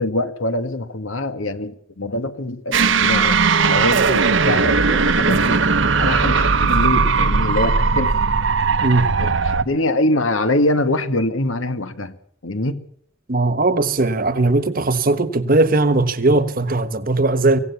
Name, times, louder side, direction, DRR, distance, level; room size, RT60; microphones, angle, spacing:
voice 1, 0.0-5.6 6.0-8.2 9.2-12.1 12.4-12.8, left 1 dB, 80° left, 1.8 m, -24 dB
sound 1, 2.7-9.6, right 4 dB, 65° right, 1.0 m, -18 dB
voice 2, 13.3-17.6, right 2 dB, 45° right, 1.3 m, -18 dB
25.0 x 17.0 x 7.1 m
head